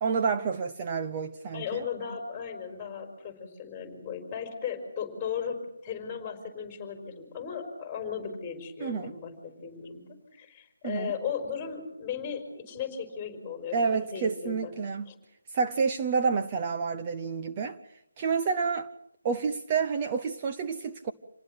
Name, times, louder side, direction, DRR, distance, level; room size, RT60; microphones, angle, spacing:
voice 1, 0.0-1.9 8.8-9.1 10.8-11.1 13.7-15.1 15.5-17.8 18.2-18.9 19.2-21.1, right 5 dB, 25° right, 0.9 m, -29 dB
voice 2, 1.5-5.6 5.8-9.3 9.6-10.0 10.3-14.7 15.1-15.2, left 7 dB, 10° left, 4.6 m, -36 dB
27.0 x 18.5 x 7.9 m
figure-of-eight pair, 165°, 0 cm